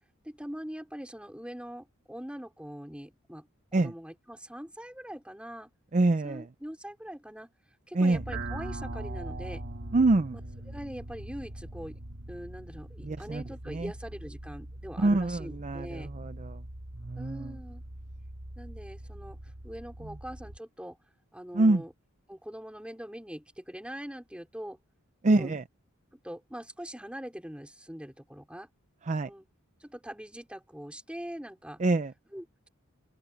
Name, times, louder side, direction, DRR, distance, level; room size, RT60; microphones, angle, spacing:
voice 1, 0.2-5.7 6.2-7.5 7.9-9.6 10.3-10.4 10.7-12.0 12.3-16.1 17.1-17.8 18.6-21.0 21.3-21.9 22.3-24.8 25.2-25.5 26.1-28.7 29.3-29.4 29.8-31.8 32.3-32.7, equal, 5° right, 4.6 m, -42 dB
voice 2, 5.9-6.4 7.9-8.2 9.9-10.4 13.0-13.4 13.7-13.9 15.0-16.6 17.0-17.5 21.5-21.8 25.2-25.6 29.1-29.3 31.8-32.1, right 2 dB, 35° right, 0.5 m, -25 dB
sound 1, 8.1-20.6, right 1 dB, 55° right, 1.5 m, -42 dB
open air
head